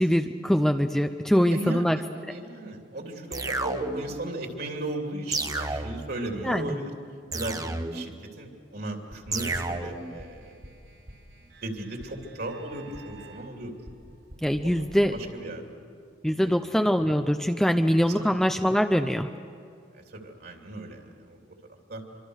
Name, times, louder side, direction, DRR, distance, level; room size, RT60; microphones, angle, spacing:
voice 1, 0.0-2.0 6.4-6.7 14.4-15.1 16.2-19.3, equal, 5° left, 7 dB, 0.5 m, -23 dB
voice 2, 1.3-6.9 7.3-10.6 11.6-13.7 14.6-14.7 15.1-15.6 18.1-18.3 19.9-21.5 21.9-22.0, right 2 dB, 60° right, 2 dB, 3.0 m, -36 dB
sound 1, 3.3-4.2 5.3-6.2 7.3-8.2 9.3-10.2, right 3 dB, 20° right, 0.9 m, -32 dB
sound 2, 9.1-15.3, right 1 dB, 75° right, 5.4 m, -48 dB
25.5 x 25.0 x 6.5 m, 2.4 s
head